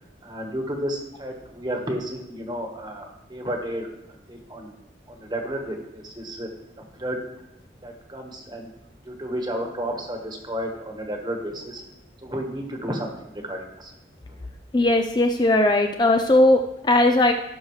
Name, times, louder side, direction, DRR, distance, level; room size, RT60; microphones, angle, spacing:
voice 1, 0.2-3.9 4.3-4.7 5.1-6.5 7.0-7.2 7.8-8.7 9.1-11.8 12.2-13.9, equal, 25° right, 3 dB, 1.3 m, -32 dB
voice 2, 14.7-17.3, left 1 dB, 25° left, 5 dB, 0.4 m, -18 dB
15.5 x 6.3 x 3.2 m, 0.91 s
head